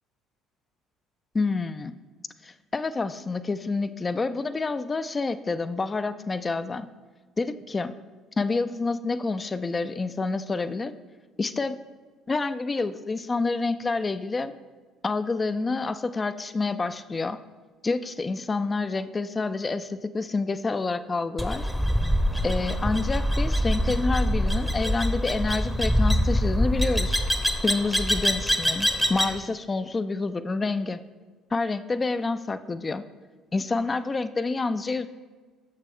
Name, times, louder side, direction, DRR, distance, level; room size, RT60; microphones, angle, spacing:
voice 1, 1.3-1.9 2.4-6.9 7.4-7.9 8.4-10.9 11.4-11.8 12.3-14.5 15.0-17.4 17.8-21.7 22.4-27.2 27.6-31.0 31.5-33.0 33.5-35.1, left 3 dB, 30° left, 11 dB, 0.3 m, -28 dB
sound 1, 21.4-29.4, equal, ahead, 0.7 m, -24 dB
6.6 x 6.5 x 3.6 m, 1.4 s
hypercardioid pair, 55°, 0 cm